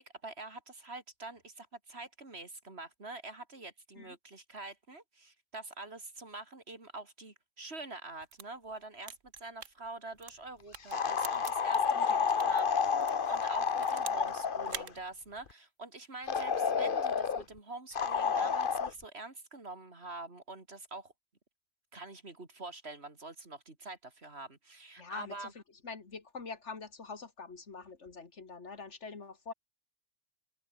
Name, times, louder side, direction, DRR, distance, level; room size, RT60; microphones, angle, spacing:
voice 1, 0.0-12.9 13.3-21.1 21.9-25.5, right 2 dB, 50° right, 3.5 m, -46 dB
sound 1, 8.2-12.6 13.0-14.3 14.6-14.9, right 8 dB, 70° right, 1.4 m, -46 dB
sound 2, 10.9-14.9 16.3-17.4 18.0-18.9, left 6 dB, 45° left, 1.2 m, -30 dB
voice 2, 25.0-25.5 25.8-29.5, left 4 dB, 60° left, 2.6 m, -44 dB
open air
omnidirectional pair, 1.3 m